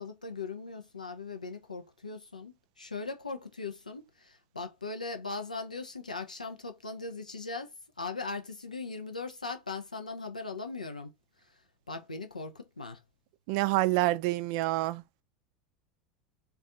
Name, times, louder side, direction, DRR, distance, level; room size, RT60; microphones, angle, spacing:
voice 1, 0.0-11.1 11.9-13.0, left 3 dB, 85° left, 0.5 m, -39 dB
voice 2, 13.5-15.0, right 18 dB, 50° right, 0.3 m, -27 dB
2.5 x 2.3 x 2.5 m
figure-of-eight pair, 80°, 4 cm